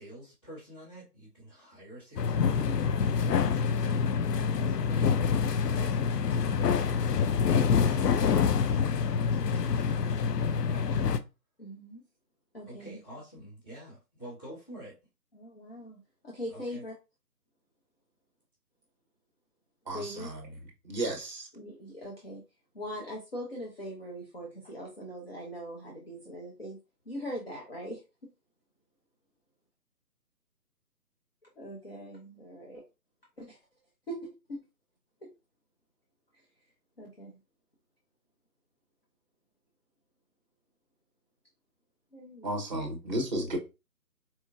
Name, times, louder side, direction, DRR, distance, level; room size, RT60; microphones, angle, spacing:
voice 1, 0.0-11.0 12.6-15.0 16.5-16.8, right 1 dB, 20° left, 1.2 m, -48 dB
sound 1, 2.2-11.2, left 6 dB, 75° left, 0.6 m, -26 dB
voice 2, 11.6-12.0 12.5-13.0 15.3-16.9 19.9-20.6 21.5-22.4 22.7-26.8 27.1-28.0 31.6-32.8 33.4-33.6 34.1-34.6 35.2-35.3 36.3-36.5 37.0-37.4 42.1-42.5, equal, 40° left, 0.7 m, -41 dB
voice 3, 19.9-20.4 20.8-21.5 42.4-43.6, right 1 dB, 30° right, 0.8 m, -33 dB
4.3 x 2.5 x 2.3 m
hypercardioid pair, 170°, 49 cm